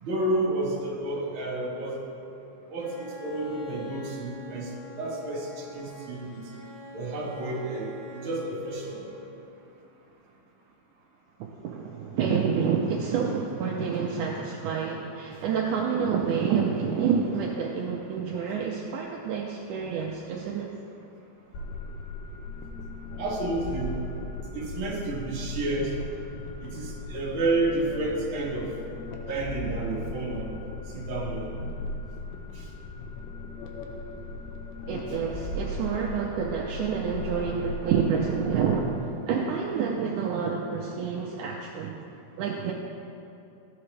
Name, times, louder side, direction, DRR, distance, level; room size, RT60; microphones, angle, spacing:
voice 1, 0.0-2.0 2.7-4.7 5.0-6.4 6.9-9.1 23.2-24.0 24.5-26.0 26.6-28.7 29.3-30.5 30.9-31.5, right 2 dB, 50° right, -4 dB, 1.7 m, -30 dB
Bowed string instrument, 2.8-9.5, left 1 dB, 75° left, 2.5 m, -46 dB
voice 2, 11.4-20.7 34.9-42.0 42.4-42.7, right 6 dB, 80° right, -1 dB, 1.9 m, -28 dB
sound 1, 21.5-39.0, left 2 dB, 90° left, 2.4 m, -37 dB
14.5 x 5.9 x 3.2 m, 2.8 s
omnidirectional pair, 3.9 m